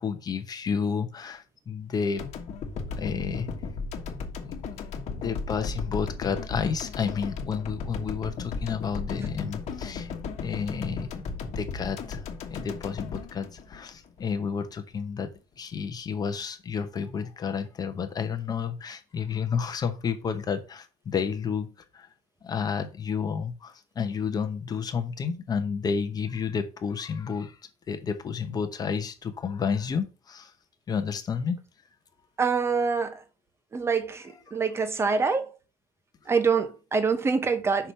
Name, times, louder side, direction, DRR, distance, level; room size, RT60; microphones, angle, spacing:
voice 1, 0.0-2.2 3.0-3.5 4.7-4.8 5.1-10.1 10.4-11.1 11.5-15.3 15.6-22.1 22.4-27.6 27.9-30.5 30.9-31.6, left 6 dB, 25° left, 0.9 m, -31 dB
sound 1, 2.2-14.4, left 4 dB, 45° left, 1.4 m, -35 dB
voice 2, 32.4-33.2 33.7-35.5 36.3-37.9, right 5 dB, 15° right, 0.9 m, -25 dB
5.8 x 5.0 x 5.7 m
cardioid pair, 170°, 16 cm